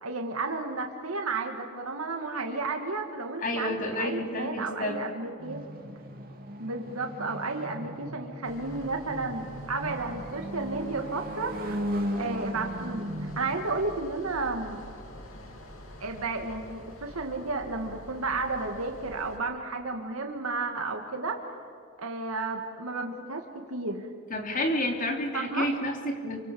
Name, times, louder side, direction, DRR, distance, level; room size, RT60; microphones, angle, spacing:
voice 1, 0.0-5.6 6.6-11.8 12.2-14.9 16.0-21.4 22.0-24.1 25.3-25.7, right 3 dB, 85° right, 3 dB, 2.1 m, -32 dB
voice 2, 3.4-5.0 24.3-26.4, left 1 dB, 40° left, 3 dB, 3.2 m, -30 dB
sound 1, 5.4-13.5, equal, 45° right, 2.8 m, -36 dB
sound 2, 8.4-19.4, left 1 dB, 70° left, 3.3 m, -47 dB
28.0 x 25.0 x 7.1 m, 2.4 s
head